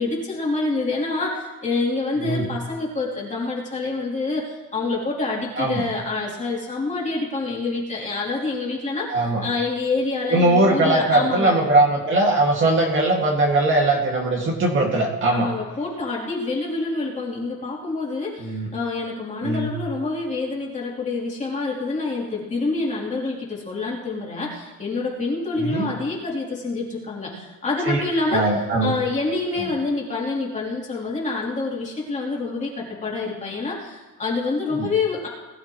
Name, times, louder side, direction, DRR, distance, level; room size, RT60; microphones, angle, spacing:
voice 1, 0.0-11.5 15.3-28.5 28.8-35.3, left 3 dB, 20° left, -4 dB, 3.2 m, -27 dB
voice 2, 9.1-9.4 10.3-15.5 18.4-18.7 19.4-19.7 25.6-25.9 27.9-28.0 28.3-28.9 29.6-29.7 34.8-34.9, right 2 dB, 35° right, 0 dB, 2.1 m, -20 dB
20.5 x 12.0 x 3.1 m, 1.2 s
cardioid pair, 150°, 34 cm